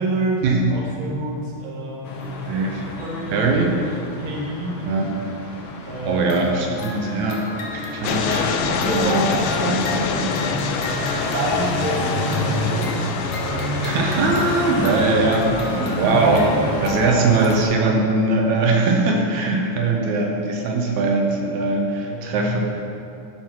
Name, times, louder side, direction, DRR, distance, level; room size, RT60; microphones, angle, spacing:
voice 1, 0.0-2.4 3.0-3.9 4.2-4.8 5.8-6.3 8.2-13.0 13.4-14.0 14.7-15.5 22.0-22.5, right 1 dB, 50° right, -3 dB, 1.9 m, -27 dB
sound 1, 2.0-17.6, left 2 dB, 60° left, 1.5 m, -28 dB
voice 2, 2.5-2.9 3.3-3.8 4.8-5.3 6.0-7.5 7.7-8.3 9.0-9.1 13.8-22.6, right 3 dB, 80° right, 1 dB, 2.2 m, -21 dB
sound 2, 8.0-15.7, left 6 dB, 80° left, 1.5 m, -27 dB
11.5 x 4.5 x 6.1 m, 2.6 s
omnidirectional pair, 3.3 m